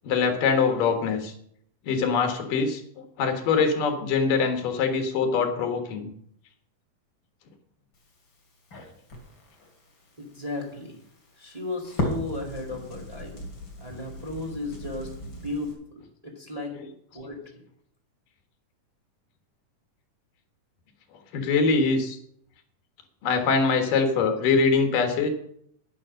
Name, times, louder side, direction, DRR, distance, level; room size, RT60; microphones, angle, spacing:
voice 1, 0.0-1.3 1.9-6.1 16.8-16.9 21.3-22.2 23.2-25.3, left 5 dB, 85° left, 6 dB, 3.2 m, -23 dB
Crackle, 7.9-15.7, left 1 dB, 35° left, 3.2 m, -38 dB
voice 2, 10.2-11.0 11.4-13.3 13.8-15.7 16.2-16.7 17.1-17.4, left 2 dB, 15° right, 0 dB, 1.7 m, -34 dB
10.0 x 9.6 x 6.4 m, 0.68 s
omnidirectional pair, 3.7 m